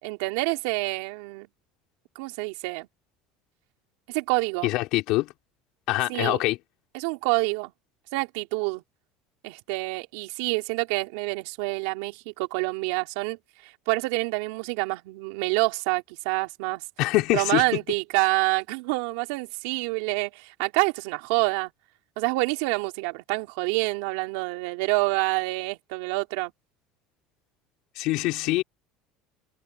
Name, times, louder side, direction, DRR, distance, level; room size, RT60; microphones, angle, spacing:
voice 1, 0.0-1.5 2.2-2.9 4.1-4.7 6.1-6.4 6.9-7.7 8.1-8.8 9.4-13.4 13.6-16.8 17.3-21.7 22.2-26.5, right 26 dB, 80° right, 3.6 m, -27 dB
voice 2, 4.6-5.3 5.9-6.6 17.0-17.6 28.0-28.6, left 19 dB, 65° left, 3.7 m, -24 dB
supercardioid pair, 125°, 0 cm